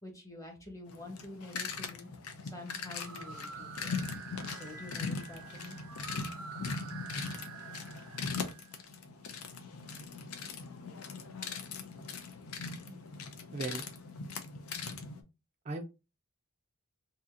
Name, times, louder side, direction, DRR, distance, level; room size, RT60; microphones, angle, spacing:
voice 1, 0.0-2.1 2.4-4.0 4.5-5.8, left 2 dB, 15° left, 1.1 m, -47 dB
sound 1, 0.9-15.2, left 4 dB, 90° left, 0.6 m, -40 dB
sound 2, 2.9-8.7, right 6 dB, 85° right, 0.6 m, -48 dB
Cymbal, 4.5-5.9, left 6 dB, 35° left, 0.7 m, -57 dB
voice 2, 13.5-13.8 15.6-15.8, right 3 dB, 30° right, 0.4 m, -37 dB
2.7 x 2.7 x 3.6 m
head